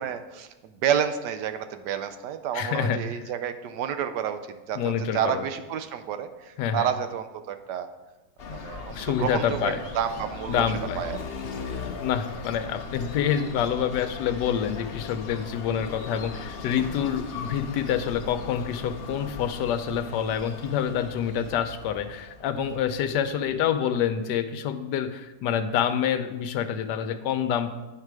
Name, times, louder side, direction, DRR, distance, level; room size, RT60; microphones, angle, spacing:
voice 1, 0.0-7.9 8.5-10.7 11.0-11.2, right 9 dB, 80° right, 9 dB, 1.2 m, -30 dB
voice 2, 2.5-3.0 4.7-5.4 6.6-6.9 8.9-9.8 10.5-11.0 12.0-27.7, left 8 dB, 80° left, 10 dB, 1.2 m, -27 dB
sound 1, 8.4-24.1, left 5 dB, 55° left, 0.7 m, -39 dB
9.0 x 5.8 x 4.7 m, 1.1 s
omnidirectional pair, 1.9 m